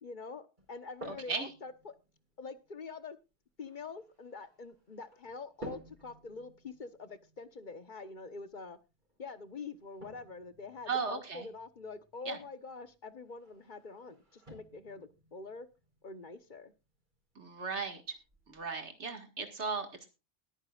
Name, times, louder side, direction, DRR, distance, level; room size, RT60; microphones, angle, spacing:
voice 1, 0.0-1.9 2.4-3.2 3.6-8.8 9.2-15.7 16.0-16.7, left 4 dB, 45° left, 12 dB, 1.1 m, -45 dB
sound 1, 0.6-18.6, equal, 45° right, 4.5 m, -55 dB
voice 2, 10.9-11.5 12.3-12.4 17.4-18.2 18.5-20.1, right 5 dB, 80° right, 6 dB, 2.2 m, -36 dB
20.5 x 9.5 x 2.4 m, 0.28 s
omnidirectional pair, 1.1 m